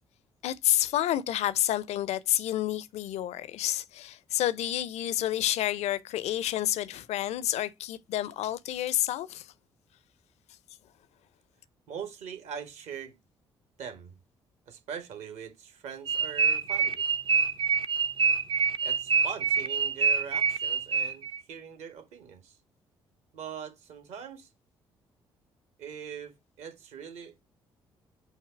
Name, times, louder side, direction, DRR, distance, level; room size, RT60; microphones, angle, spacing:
voice 1, 0.4-9.5, left 13 dB, 55° left, 0.5 m, -29 dB
voice 2, 11.9-13.2 13.8-14.2 14.7-17.0 18.8-22.6 23.3-24.5 25.8-27.4, right 7 dB, 60° right, 1.4 m, -42 dB
sound 1, 16.1-21.4, right 5 dB, 40° right, 0.6 m, -26 dB
8.2 x 3.0 x 4.6 m
figure-of-eight pair, 45°, 13 cm